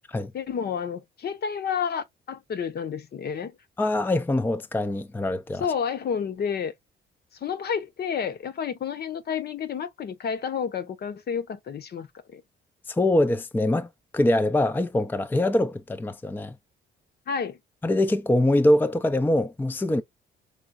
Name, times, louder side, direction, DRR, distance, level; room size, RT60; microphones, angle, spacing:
voice 1, 0.3-3.6 5.6-6.7 7.3-12.4 17.3-17.6, left 7 dB, 55° left, 0.9 m, -30 dB
voice 2, 3.8-5.7 12.9-16.5 17.8-20.0, left 1 dB, 10° left, 0.5 m, -23 dB
4.9 x 3.7 x 2.5 m
cardioid pair, 90°, 20 cm